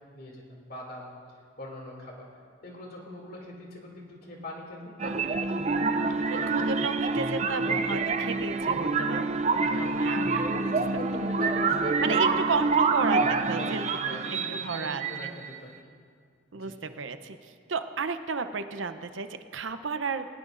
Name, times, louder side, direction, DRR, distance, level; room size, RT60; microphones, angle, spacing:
voice 1, 0.1-1.1 1.6-2.3 2.6-5.9 6.3-6.8 7.5-7.8 8.7-8.8 9.6-9.9 10.5-12.4 13.1-15.9 16.5-16.8, left 1 dB, 50° left, -1 dB, 2.7 m, -42 dB
sound 1, 5.0-15.6, right 4 dB, 35° right, 0.5 m, -27 dB
voice 2, 6.3-10.5 12.0-14.0 14.5-15.3 16.5-20.3, right 5 dB, 80° right, 9 dB, 0.7 m, -33 dB
20.0 x 17.5 x 2.6 m, 2.2 s
head